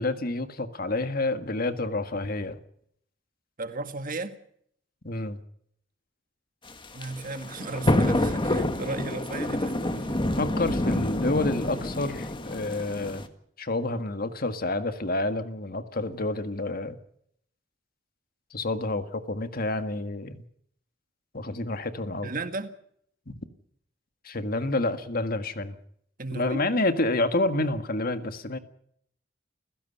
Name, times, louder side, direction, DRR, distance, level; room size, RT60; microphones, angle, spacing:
voice 1, 0.0-2.6 5.0-5.4 10.4-13.2 13.6-17.0 18.5-20.4 21.3-22.3 23.3-23.4 24.2-25.8 26.3-28.6, left 2 dB, 50° left, 1.8 m, -29 dB
voice 2, 3.6-4.4 6.9-10.2 22.2-22.7 26.2-26.7, right 3 dB, 45° right, 1.9 m, -35 dB
sound 1, 6.7-13.3, left 1 dB, 25° left, 1.7 m, -27 dB
29.5 x 16.0 x 5.6 m
head